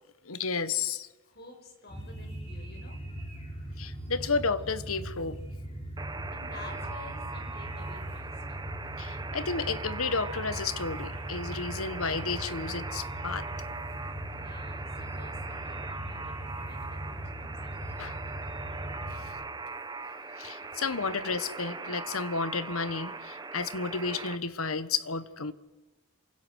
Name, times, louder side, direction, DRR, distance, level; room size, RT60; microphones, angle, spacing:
voice 1, 0.2-1.1 3.8-5.4 9.0-13.5 18.0-18.2 20.4-25.5, left 4 dB, 80° left, 1.3 m, -32 dB
voice 2, 1.2-3.0 6.3-8.4 14.3-18.1, left 2 dB, 50° left, 6.4 m, -50 dB
sound 1, 1.9-19.3, right 1 dB, 30° left, 7.6 m, -40 dB
Alarm, 6.0-24.4, right 3 dB, 20° right, 1.1 m, -40 dB
27.5 x 24.5 x 6.4 m
head